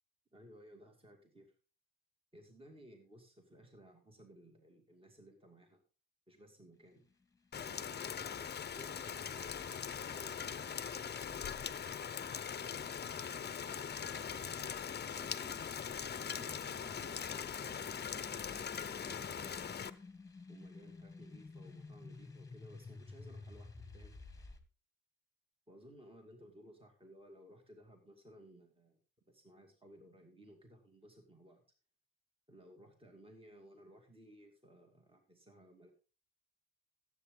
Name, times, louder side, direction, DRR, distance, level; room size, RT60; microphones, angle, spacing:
voice 1, 0.3-1.5 2.3-5.8 6.3-7.0 7.6-12.0 12.6-15.5 16.2-20.0 20.5-24.2 25.7-29.0 29.3-31.6 32.5-35.9, equal, 20° right, 3 dB, 2.5 m, -59 dB
sound 1, 6.7-24.6, left 3 dB, 10° left, 1.8 m, -55 dB
Rain, 7.5-19.9, left 7 dB, 35° left, 0.7 m, -41 dB
15.0 x 8.1 x 3.8 m, 0.37 s
cardioid pair, 90°, 30 cm